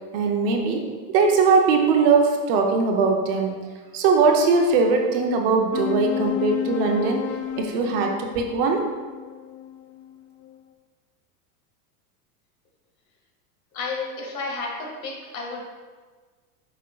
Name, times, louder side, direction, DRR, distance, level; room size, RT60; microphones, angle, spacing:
voice 1, 0.1-3.6 3.9-7.3 7.6-8.8, right 4 dB, 40° right, 2 dB, 0.7 m, -20 dB
sound 1, 5.7-10.5, left 11 dB, 40° left, 0.4 m, -31 dB
voice 2, 13.7-15.6, left 3 dB, 65° left, -1 dB, 1.9 m, -31 dB
8.4 x 6.0 x 2.3 m, 1.5 s
supercardioid pair, 170°, 45 cm